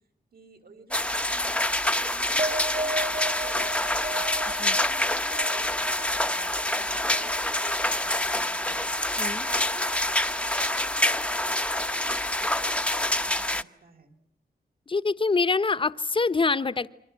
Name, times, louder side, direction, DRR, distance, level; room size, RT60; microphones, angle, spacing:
voice 1, 0.3-4.5 4.8-9.0 9.4-14.2, right 3 dB, 65° right, 5 dB, 5.6 m, -52 dB
sound 1, 0.9-13.6, left 1 dB, 5° left, 1.0 m, -26 dB
sound 2, 2.4-9.1 9.4-10.0, right 1 dB, 40° right, 1.6 m, -36 dB
voice 2, 14.9-16.9, left 4 dB, 30° left, 15 dB, 1.1 m, -25 dB
29.0 x 25.0 x 7.6 m, 0.77 s
wide cardioid pair, 135°, 16 cm